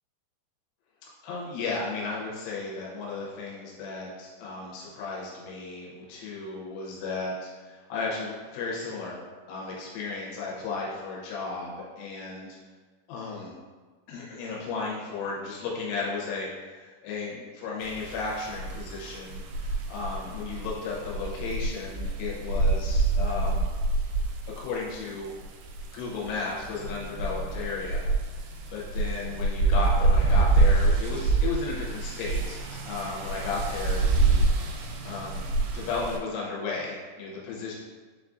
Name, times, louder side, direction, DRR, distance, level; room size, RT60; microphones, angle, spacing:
voice 1, 1.2-9.2 9.5-12.5 13.1-13.5 14.1-23.7 24.6-25.3 25.9-28.1 28.7-35.5 35.7-37.7, left 4 dB, 90° left, -4 dB, 3.3 m, -34 dB
sound 1, 17.8-36.2, right 3 dB, 85° right, 3.0 m, -27 dB
7.0 x 2.5 x 2.4 m, 1.4 s
omnidirectional pair, 5.5 m